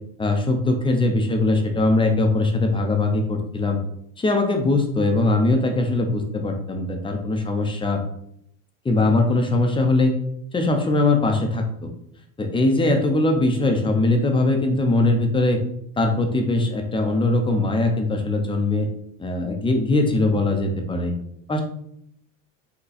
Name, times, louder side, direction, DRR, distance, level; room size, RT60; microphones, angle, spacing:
voice 1, 0.2-3.8 4.2-8.0 8.8-10.1 10.5-11.9 12.4-15.6 16.0-18.9 19.2-21.1 21.5-21.6, left 2 dB, 15° left, 3 dB, 0.6 m, -21 dB
5.5 x 2.3 x 4.1 m, 0.74 s
supercardioid pair, 120°, 39 cm